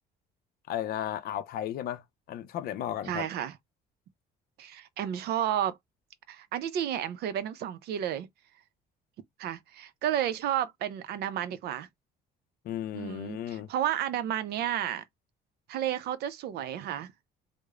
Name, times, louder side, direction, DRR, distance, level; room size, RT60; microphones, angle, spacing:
voice 1, 0.7-2.0 2.3-3.3 12.7-13.7, left 11 dB, 65° left, 0.4 m, -34 dB
voice 2, 3.0-3.6 4.6-5.8 6.3-8.3 9.4-11.9 12.9-15.0 15.7-17.1, right 11 dB, 70° right, 0.5 m, -32 dB
3.0 x 2.0 x 2.3 m
cardioid pair, 110°, 17 cm